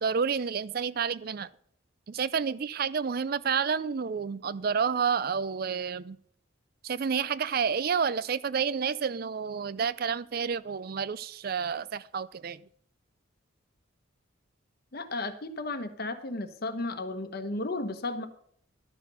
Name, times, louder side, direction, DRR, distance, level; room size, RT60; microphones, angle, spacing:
voice 1, 0.0-1.5 2.1-6.2 6.8-12.6, right 6 dB, 45° right, 18 dB, 0.4 m, -29 dB
voice 2, 14.9-18.3, left 2 dB, 50° left, 9 dB, 1.0 m, -34 dB
12.0 x 6.1 x 6.8 m, 0.65 s
head